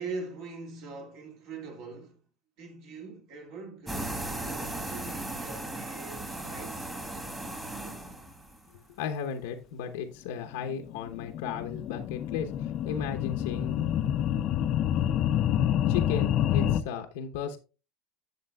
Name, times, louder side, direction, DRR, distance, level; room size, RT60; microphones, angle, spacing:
voice 1, 0.0-2.2 2.6-6.9, right 4 dB, 55° right, 2.2 m, -42 dB
sound 1, 3.9-8.7, right 1 dB, 10° right, 1.7 m, -37 dB
voice 2, 9.0-13.9 15.9-17.6, left 7 dB, 90° left, 0.9 m, -35 dB
sound 2, 10.7-16.8, left 10 dB, 40° left, 0.4 m, -28 dB
12.0 x 7.3 x 2.3 m
cardioid pair, 155°, 0 cm